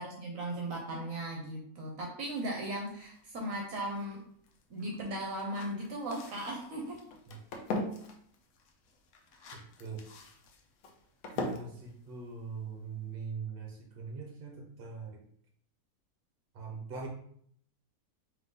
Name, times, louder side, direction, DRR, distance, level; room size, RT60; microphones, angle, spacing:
voice 1, 0.0-4.2 4.7-7.0 9.4-9.6, right 1 dB, 65° right, -1 dB, 1.1 m, -37 dB
sound 1, 2.2-13.1, left 2 dB, 75° left, 1.1 m, -43 dB
voice 2, 11.4-15.2 16.5-17.1, right 5 dB, 45° right, 0 dB, 1.1 m, -42 dB
3.8 x 3.1 x 3.7 m, 0.65 s
omnidirectional pair, 1.6 m